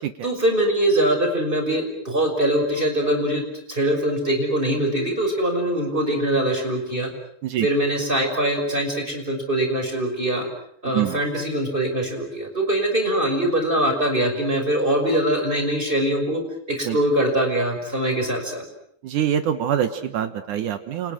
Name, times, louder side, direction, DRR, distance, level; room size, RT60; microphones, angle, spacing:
voice 1, 0.2-3.4 3.7-7.1 7.6-10.5 10.8-16.4 16.7-18.6, right 1 dB, 10° right, 3 dB, 5.8 m, -22 dB
voice 2, 19.0-21.1, right 10 dB, 70° right, 9 dB, 1.9 m, -25 dB
30.0 x 29.5 x 6.3 m, 0.67 s
omnidirectional pair, 5.2 m